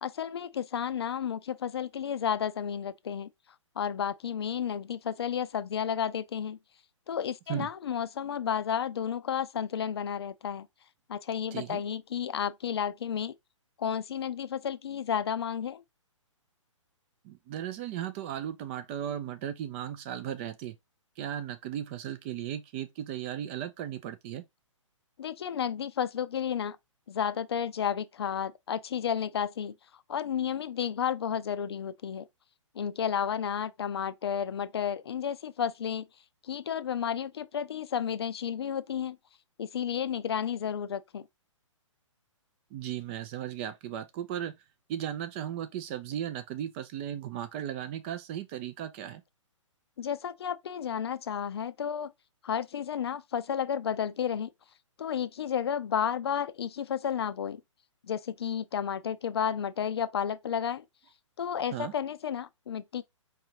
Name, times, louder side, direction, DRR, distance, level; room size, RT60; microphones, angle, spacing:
voice 1, 0.0-3.3 3.8-6.6 7.1-10.7 11.1-13.3 13.8-15.8 25.2-26.8 27.1-29.7 30.1-32.3 32.7-36.1 36.4-39.2 39.6-41.2 50.0-52.1 52.4-54.5 55.0-57.6 58.0-60.8 61.4-63.0, left 8 dB, 50° left, 0.5 m, -32 dB
voice 2, 11.5-11.8 17.2-20.8 21.2-24.4 42.7-44.5 44.9-49.2 61.7-61.9, right 10 dB, 25° right, 0.4 m, -36 dB
4.6 x 3.2 x 2.7 m
figure-of-eight pair, 125°, 17 cm